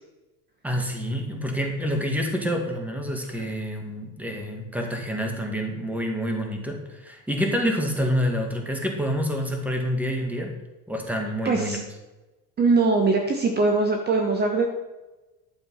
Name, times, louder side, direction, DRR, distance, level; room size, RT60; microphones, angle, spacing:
voice 1, 0.6-10.5 10.9-11.8, equal, 5° right, 2 dB, 2.0 m, -27 dB
voice 2, 11.4-11.8 12.6-14.7, right 3 dB, 25° right, 3 dB, 1.3 m, -21 dB
11.5 x 7.1 x 5.7 m, 1.1 s
cardioid pair, 140°, 36 cm